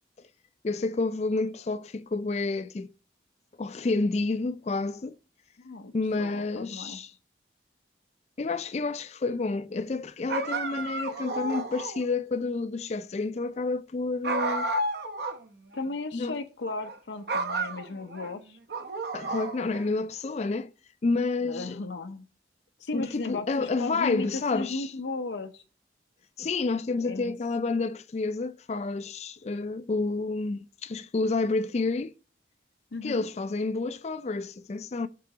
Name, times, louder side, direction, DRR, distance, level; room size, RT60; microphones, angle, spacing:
voice 1, 0.6-2.9 3.6-5.2 5.9-7.1 8.4-14.7 16.1-16.3 19.1-20.7 21.0-21.8 22.9-24.9 26.4-32.2 33.0-35.1, left 3 dB, 35° left, 0.4 m, -29 dB
voice 2, 6.2-7.0 15.7-18.6 21.4-22.3 22.8-25.6 27.0-27.4 32.9-33.3, left 3 dB, 85° left, 0.7 m, -35 dB
sound 1, 10.3-12.1 14.2-15.4 15.7-15.8 16.7-17.0 17.3-18.3 18.7-19.9, right 2 dB, 65° right, 0.8 m, -31 dB
6.7 x 3.8 x 4.9 m
head